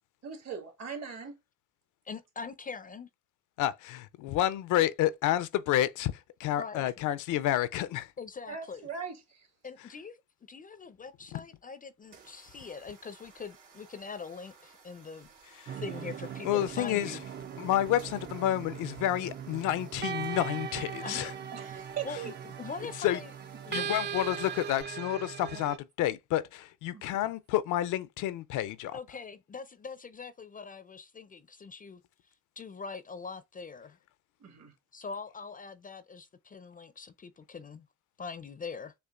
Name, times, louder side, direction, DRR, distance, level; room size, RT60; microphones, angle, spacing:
voice 1, 0.2-1.4 8.5-9.5 21.5-22.3 25.5-25.6 26.9-27.1 34.4-34.7, right 7 dB, 60° right, 1.8 m, -40 dB
voice 2, 2.1-3.1 6.6-6.8 8.2-8.9 9.6-10.2 10.5-15.3 15.8-17.2 21.0-21.3 21.7-21.8 22.0-23.3 23.6-23.9 28.9-32.0 32.6-34.0 34.9-37.9 38.2-38.9, left 5 dB, 30° left, 0.4 m, -43 dB
voice 3, 3.6-8.1 15.6-15.8 16.4-17.2 17.6-21.3 23.0-23.2 23.7-29.0, left 12 dB, 85° left, 0.5 m, -30 dB
sound 1, 12.0-24.8, right 5 dB, 90° right, 2.3 m, -57 dB
sound 2, 15.7-25.8, right 8 dB, 35° right, 0.4 m, -39 dB
6.7 x 2.5 x 2.4 m
cardioid pair, 90°, 30 cm